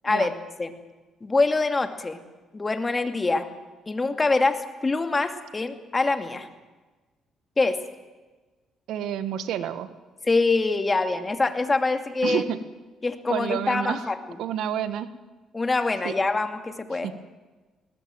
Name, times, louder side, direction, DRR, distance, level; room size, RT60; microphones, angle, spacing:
voice 1, 1.2-2.2 2.5-3.5 3.9-6.5 7.6-7.8 10.2-12.4 13.0-14.2 15.5-17.1, left 3 dB, 25° left, 7 dB, 2.4 m, -24 dB
voice 2, 8.9-9.9 12.2-12.6 13.3-14.1 14.4-15.1 16.0-16.1 17.0-17.1, right 10 dB, 80° right, 12 dB, 1.5 m, -29 dB
20.5 x 19.5 x 9.2 m, 1.2 s
cardioid pair, 95°, 0 cm